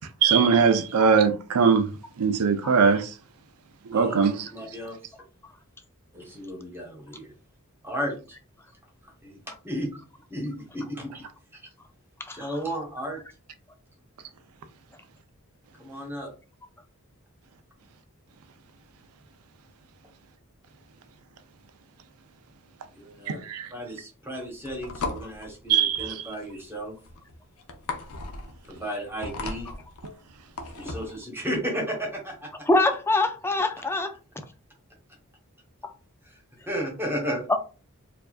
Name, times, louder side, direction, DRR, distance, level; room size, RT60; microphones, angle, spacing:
voice 1, 0.2-1.9 2.2-3.1 3.9-4.3 23.3-23.7 25.7-26.1, right 6 dB, 85° right, 0.5 m, -21 dB
voice 2, 3.9-5.1 6.1-7.3 7.8-8.4 9.0-10.0 10.3-11.2 11.5-11.7 12.3-13.2 15.7-16.3 22.9-23.4 23.7-27.0 28.6-29.7 30.7-32.7 36.2-37.5, equal, 10° right, 1.2 m, -34 dB
sound 1, 24.4-31.2, left 3 dB, 85° left, 0.7 m, -37 dB
voice 3, 32.7-34.1 37.5-37.6, left 2 dB, 10° left, 0.4 m, -23 dB
4.5 x 2.6 x 2.4 m
head